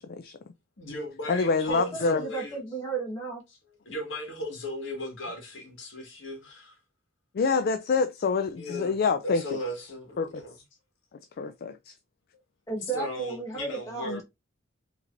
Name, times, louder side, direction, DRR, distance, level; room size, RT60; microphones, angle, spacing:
voice 1, 0.0-0.4 1.3-2.2 7.3-9.6 10.2-10.4 11.4-11.9 14.0-14.2, left 4 dB, 50° left, 0.4 m, -27 dB
voice 2, 0.8-2.6 3.8-6.8 8.6-8.9 9.2-10.6 12.9-14.2, left 1 dB, 70° left, 1.7 m, -36 dB
voice 3, 1.7-3.4 12.7-14.2, right 5 dB, 15° left, 1.4 m, -34 dB
4.9 x 3.3 x 2.6 m
head